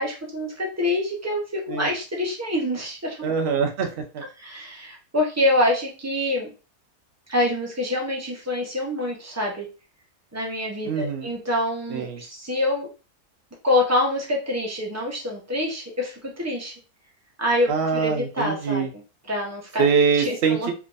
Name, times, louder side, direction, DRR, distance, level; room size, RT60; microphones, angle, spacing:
voice 1, 0.0-3.3 4.4-6.5 7.3-9.7 10.3-12.9 13.6-16.7 17.4-18.9 19.3-19.8 20.2-20.7, left 1 dB, 20° right, -1 dB, 0.4 m, -26 dB
voice 2, 3.2-4.2 10.9-11.3 11.9-12.2 17.7-18.9 19.8-20.7, right 6 dB, 75° right, 3 dB, 0.6 m, -23 dB
3.4 x 3.1 x 2.5 m, 0.33 s
omnidirectional pair, 1.7 m